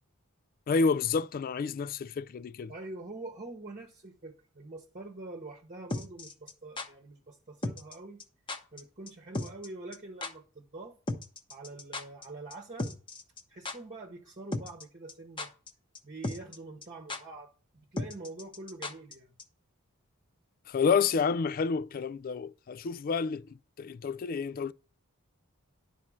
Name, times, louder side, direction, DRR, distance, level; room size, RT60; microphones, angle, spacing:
voice 1, 0.7-2.7 20.7-24.7, left 5 dB, 40° left, 0.3 m, -29 dB
voice 2, 2.7-8.2 8.7-11.0 11.5-12.9 13.5-15.5 16.0-17.5 17.9-19.3, right 2 dB, 35° right, 1.0 m, -45 dB
sound 1, 5.9-6.9 7.6-8.2 8.5-8.8 9.1-9.2 9.3-9.7 9.9-10.0 10.2-10.3 11.1-12.2 12.5-12.6 12.8-13.4 13.6-13.8 14.5-14.8 15.1-15.7 15.9-16.0 16.2-16.6 16.8-16.9 17.1-17.2 18.0-19.1 19.4-19.5, left 2 dB, 25° left, 0.9 m, -35 dB
11.0 x 4.3 x 6.3 m
head